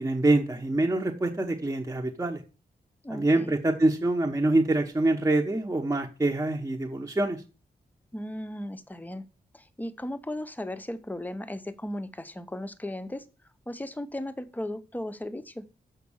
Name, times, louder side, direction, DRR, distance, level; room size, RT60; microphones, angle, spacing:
voice 1, 0.0-2.4 3.1-7.4, right 2 dB, 20° right, 1 dB, 1.0 m, -25 dB
voice 2, 3.0-3.5 8.1-9.3 9.5-13.2 13.7-15.6, left 1 dB, 10° left, 11 dB, 0.8 m, -36 dB
7.3 x 5.8 x 7.1 m, 0.33 s
wide cardioid pair, 140°, 16 cm